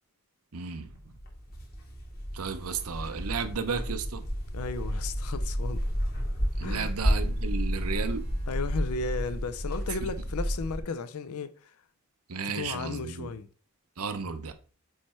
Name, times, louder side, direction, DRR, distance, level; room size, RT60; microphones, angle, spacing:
voice 1, 0.5-1.1 2.3-4.3 6.6-8.3 12.3-13.3 14.0-14.5, right 5 dB, 85° right, 0.8 m, -34 dB
sound 1, 0.9-10.8, equal, 45° left, 1.7 m, -31 dB
voice 2, 4.5-5.8 6.6-6.9 8.5-11.8 12.6-13.5, left 4 dB, 80° left, 0.5 m, -35 dB
Bowed string instrument, 5.4-8.8, left 2 dB, 35° right, 2.5 m, -60 dB
8.4 x 3.2 x 4.4 m
head